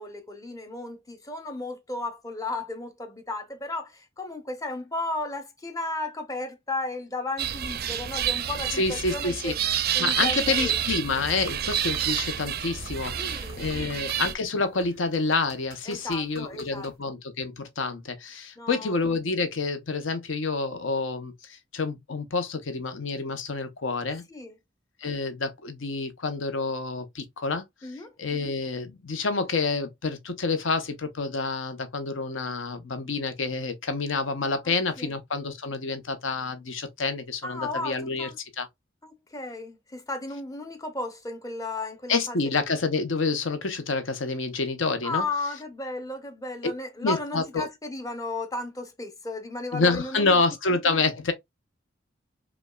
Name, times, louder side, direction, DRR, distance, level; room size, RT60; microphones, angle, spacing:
voice 1, 0.0-9.5 9.9-10.8 13.1-14.1 15.9-16.9 18.6-18.9 24.3-24.5 27.8-28.1 34.6-35.1 37.4-38.4 39.0-42.4 45.0-50.4, left 2 dB, 20° left, 0.7 m, -34 dB
sound 1, 7.4-14.3, right 9 dB, 50° right, 0.4 m, -29 dB
voice 2, 8.7-9.5 10.0-24.2 25.0-27.6 28.2-38.3 38.6-38.7 42.1-45.2 46.6-46.7 47.0-47.7 49.7-51.3, left 3 dB, 80° left, 0.8 m, -28 dB
sound 2, 11.5-17.0, right 1 dB, 55° left, 2.3 m, -49 dB
5.1 x 2.3 x 2.2 m
head